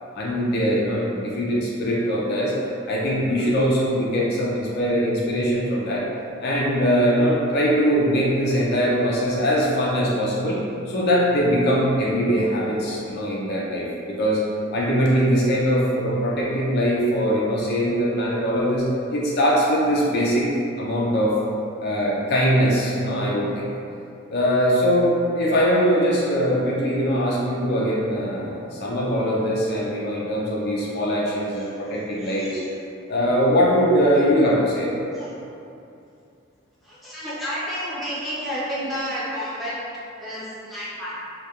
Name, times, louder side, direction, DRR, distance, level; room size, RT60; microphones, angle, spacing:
voice 1, 0.1-2.5 2.9-6.0 6.4-10.6 10.9-14.4 14.7-20.5 20.8-21.4 21.8-23.7 24.3-32.6 33.1-35.1, equal, 50° left, -4 dB, 0.4 m, -21 dB
voice 2, 31.5-32.7 35.1-35.3 36.8-39.9 40.2-41.2, equal, ahead, -11 dB, 0.5 m, -31 dB
2.8 x 2.2 x 2.3 m, 2.6 s
head